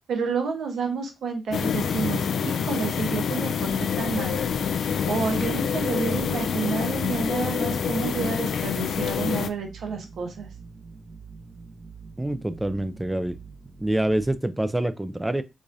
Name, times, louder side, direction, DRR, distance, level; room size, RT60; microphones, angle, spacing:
voice 1, 0.1-4.4 5.1-10.5, right 5 dB, 85° right, 1.0 m, -30 dB
sound 1, 1.5-9.5, left 7 dB, 75° left, 0.3 m, -27 dB
sound 2, 1.5-14.3, right 3 dB, 60° right, 1.2 m, -44 dB
voice 2, 12.2-13.4 13.8-15.4, right 1 dB, 10° right, 0.3 m, -26 dB
4.8 x 2.5 x 2.6 m
cardioid pair, 110°, 0 cm